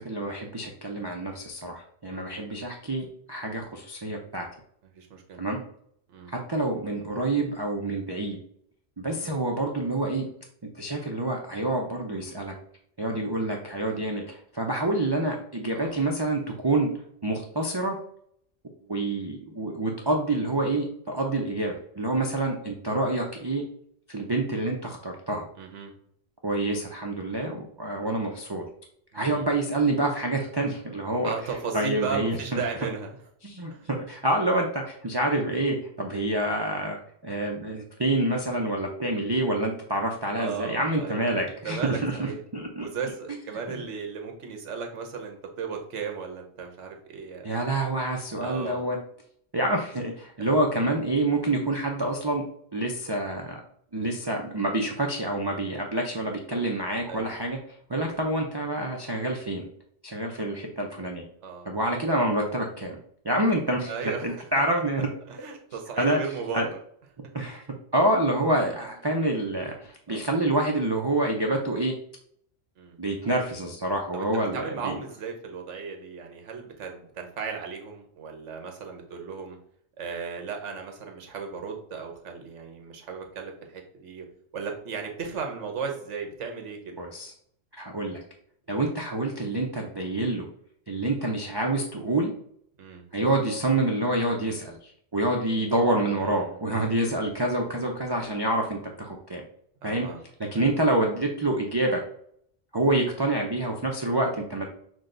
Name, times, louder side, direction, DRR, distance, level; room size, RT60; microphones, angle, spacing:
voice 1, 0.0-4.5 5.4-5.6 6.3-8.4 9.0-10.3 10.8-12.5 13.0-16.9 17.2-18.0 18.9-23.6 24.1-25.4 26.4-28.6 29.1-31.3 31.7-32.6 33.4-42.3 42.5-42.9 47.4-49.0 49.5-52.4 52.7-53.6 53.9-57.6 57.9-59.7 60.0-61.2 61.7-63.0 63.2-63.9 64.2-65.1 66.0-66.2 66.5-66.7 67.3-67.6 67.9-71.9 73.0-75.0 87.0-87.3 87.8-88.2 88.7-90.5 90.9-92.3 93.1-99.4 99.8-100.1 100.5-102.0 102.7-104.7, right 1 dB, 45° right, 0 dB, 0.3 m, -27 dB
voice 2, 2.1-2.4 4.8-5.4 6.1-6.3 9.1-9.3 15.7-16.0 25.6-25.9 29.1-29.5 31.2-33.2 33.7-33.9 40.3-41.3 41.6-42.4 42.8-47.6 48.4-48.8 50.4-50.5 57.1-57.4 61.4-61.7 63.9-64.5 65.3-66.8 70.1-70.3 72.8-73.0 74.1-74.3 74.5-79.6 80.0-84.2 84.5-86.9 92.8-93.0 96.2-96.5 99.8-100.2 100.5-100.7, right 5 dB, 70° right, 3 dB, 1.2 m, -36 dB
6.2 x 2.2 x 3.8 m, 0.66 s
omnidirectional pair, 1.3 m